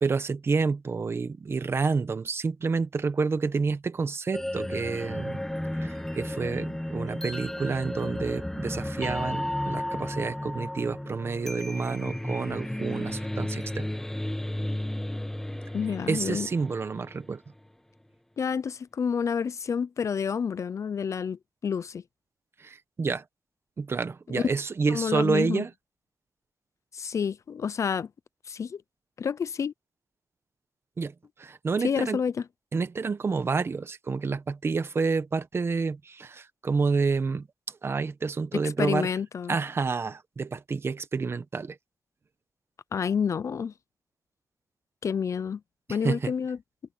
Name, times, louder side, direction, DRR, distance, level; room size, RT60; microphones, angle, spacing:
voice 1, 0.0-5.4 5.8-13.9 16.1-17.4 22.6-23.2 23.8-25.7 31.0-31.1 31.4-32.2 32.7-37.5 37.8-39.1 39.5-41.8 46.0-46.3, right 4 dB, 35° right, 1.0 m, -29 dB
sound 1, 4.3-17.3, left 1 dB, 5° left, 1.0 m, -33 dB
voice 2, 15.7-16.5 18.4-22.0 24.3-24.5 24.9-25.6 26.9-28.1 28.5-28.8 29.2-29.7 31.8-32.4 38.5-39.6 42.9-43.7 45.0-45.6 45.9-46.6, left 6 dB, 45° left, 0.4 m, -29 dB
wide cardioid pair, 155°, 7 cm